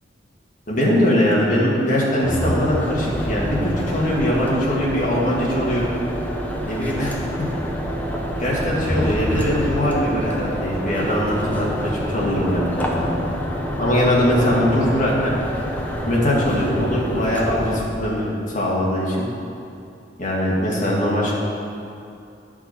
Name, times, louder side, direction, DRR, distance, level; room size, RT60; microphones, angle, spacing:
voice 1, 0.7-5.9 6.6-7.5 8.4-13.1 13.8-15.3 16.0-19.3 20.2-21.3, equal, 45° left, -5 dB, 1.8 m, -21 dB
sound 1, 2.2-17.8, equal, 10° left, 0.8 m, -27 dB
10.5 x 5.9 x 4.2 m, 2.6 s
head